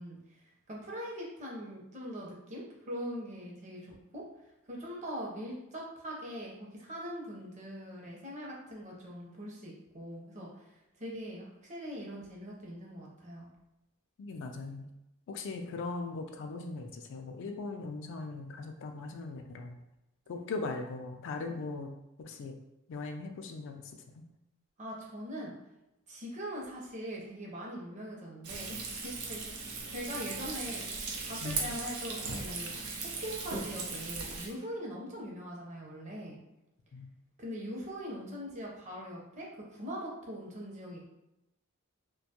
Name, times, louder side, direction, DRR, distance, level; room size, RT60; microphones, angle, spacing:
voice 1, 0.0-3.8 4.1-4.2 4.7-10.7 11.0-13.5 21.5-21.6 24.8-25.5 26.1-32.7 33.2-36.4 37.4-41.1, equal, 35° right, -2 dB, 0.6 m, -42 dB
voice 2, 14.2-14.9 15.3-19.8 20.3-21.9 22.2-22.5 22.9-23.8 31.4-31.7 36.9-37.1, left 3 dB, 60° left, 4 dB, 0.3 m, -39 dB
Frying (food), 28.4-34.5, right 4 dB, 90° right, 0.5 m, -38 dB
2.4 x 2.2 x 2.8 m, 0.92 s
head